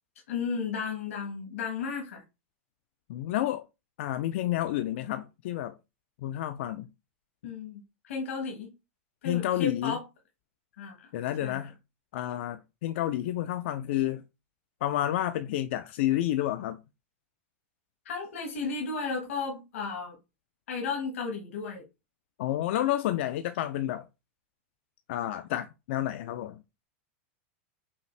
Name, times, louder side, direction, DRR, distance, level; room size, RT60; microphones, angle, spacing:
voice 1, 0.3-2.2 7.4-8.7 9.2-10.0 10.8-11.1 11.4-11.6 18.0-20.2 20.7-21.8, left 5 dB, 80° left, 1.3 m, -34 dB
voice 2, 3.1-3.7 4.0-5.8 6.2-6.9 9.2-10.0 11.1-11.7 12.1-14.2 14.8-16.8 22.4-24.1 25.1-26.6, left 13 dB, 60° left, 0.3 m, -30 dB
5.5 x 2.4 x 3.2 m
supercardioid pair, 145°, 7 cm